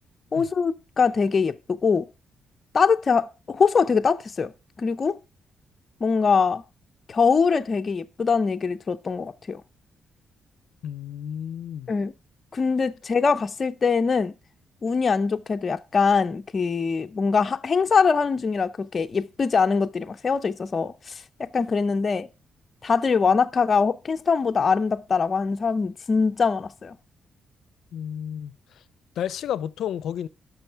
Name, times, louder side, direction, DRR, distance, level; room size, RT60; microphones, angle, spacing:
voice 1, 0.3-2.1 2.7-4.5 4.8-5.2 6.0-6.6 7.1-9.6 11.9-12.1 12.5-14.3 14.8-20.9 21.4-22.3 22.8-27.0, left 5 dB, 30° left, 0.6 m, -23 dB
voice 2, 10.8-11.9 27.9-28.5 29.2-30.3, left 9 dB, 75° left, 0.5 m, -31 dB
12.5 x 6.2 x 4.5 m
wide cardioid pair, 165°, 0 cm